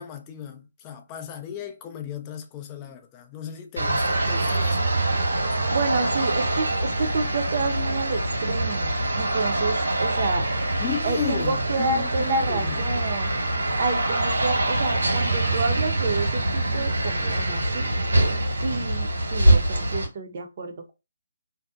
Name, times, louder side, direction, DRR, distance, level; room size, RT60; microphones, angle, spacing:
voice 1, 0.0-4.9 10.8-12.8, left 8 dB, 20° left, 0.4 m, -35 dB
sound 1, 3.8-20.1, right 1 dB, 85° right, 1.4 m, -24 dB
voice 2, 5.6-10.4 11.0-13.4 13.8-17.9 18.6-20.9, right 3 dB, 40° right, 0.6 m, -29 dB
2.6 x 2.1 x 2.4 m
figure-of-eight pair, 150°, 0 cm